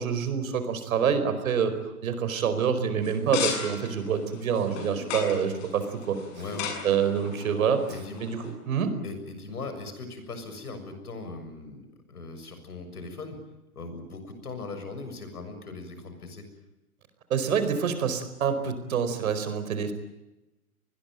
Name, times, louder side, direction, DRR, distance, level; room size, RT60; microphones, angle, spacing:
voice 1, 0.0-1.7 2.0-6.2 6.8-7.8 8.2-8.9 17.3-19.9, right 7 dB, 65° right, 10 dB, 4.8 m, -26 dB
sound 1, 3.0-8.5, left 6 dB, 35° left, 7.4 m, -36 dB
voice 2, 6.4-6.8 7.9-8.2 9.0-13.4 13.7-16.5, left 3 dB, 80° left, 8 dB, 7.0 m, -39 dB
26.5 x 20.5 x 9.1 m, 0.97 s
hypercardioid pair, 115°, 45 cm